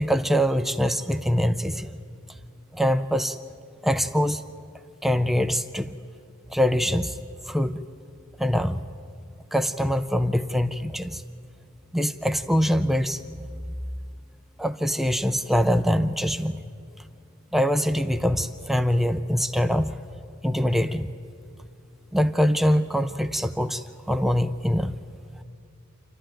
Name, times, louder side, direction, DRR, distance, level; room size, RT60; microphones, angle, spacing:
voice 1, 0.0-2.0 2.7-3.4 3.8-4.4 5.0-5.9 6.5-7.2 7.5-7.8 8.4-8.9 9.5-11.2 11.9-13.2 14.6-16.6 17.5-20.0 20.4-21.1 22.1-24.9, equal, ahead, 9 dB, 0.5 m, -23 dB
28.5 x 12.5 x 8.9 m, 2.4 s
head